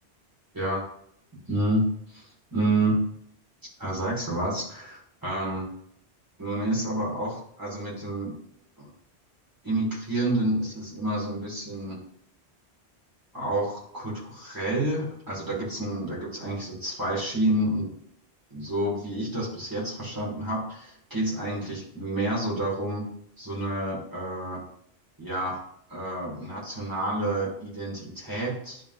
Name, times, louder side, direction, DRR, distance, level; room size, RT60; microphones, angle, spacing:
voice 1, 1.5-3.0 3.8-5.7 6.4-8.4 8.8-8.9 9.6-12.0 13.3-17.9 18.5-23.1 23.4-24.6 25.2-25.6 25.9-28.8, right 1 dB, 20° right, -5 dB, 2.2 m, -29 dB
10.0 x 3.8 x 2.7 m, 0.70 s
omnidirectional pair, 1.1 m